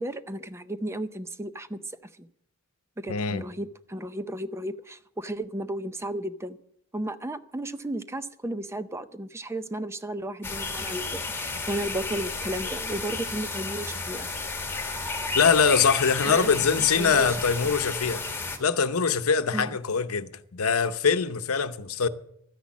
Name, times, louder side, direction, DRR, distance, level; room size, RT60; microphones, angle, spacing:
voice 1, 0.0-1.8 2.2-2.3 3.0-6.6 6.9-14.3 16.3-16.5 17.0-17.4 19.5-19.7, right 1 dB, 10° right, 0.5 m, -34 dB
voice 2, 3.1-3.4 15.3-22.1, left 6 dB, 90° left, 0.8 m, -23 dB
sound 1, 10.4-18.6, left 3 dB, 10° left, 2.0 m, -32 dB
13.0 x 10.0 x 7.3 m
head